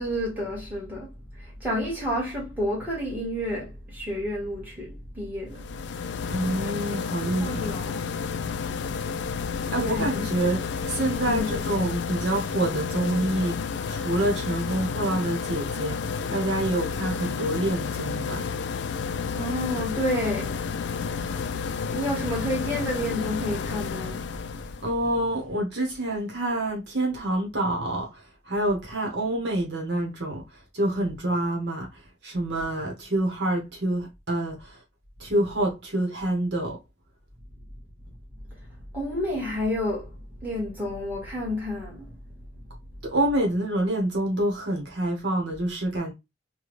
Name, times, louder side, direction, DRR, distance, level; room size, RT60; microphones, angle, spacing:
voice 1, 0.0-6.0 7.2-8.0 9.6-10.3 11.3-11.6 19.3-20.9 21.5-24.6 38.9-42.1, equal, 10° right, 1.5 m, -30 dB
sound 1, 5.5-24.9, left 5 dB, 65° left, 0.3 m, -31 dB
voice 2, 6.3-7.7 9.7-13.6 13.9-16.0 16.3-18.4 24.8-30.4 30.7-31.9 32.2-34.8 35.2-36.8 43.0-46.1, right 1 dB, 60° right, 1.1 m, -27 dB
3.5 x 2.3 x 3.0 m
head